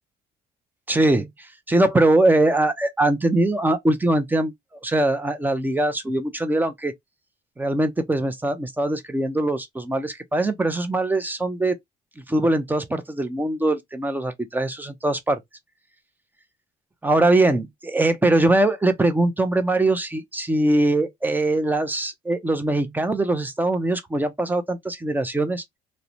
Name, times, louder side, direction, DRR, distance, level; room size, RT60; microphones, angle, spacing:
voice 1, 0.9-1.3 1.7-4.5 4.8-6.9 7.6-11.8 12.3-15.4 17.0-25.6, right 2 dB, 10° right, 0.5 m, -22 dB
2.4 x 2.1 x 2.8 m
cardioid pair, 110°, 17 cm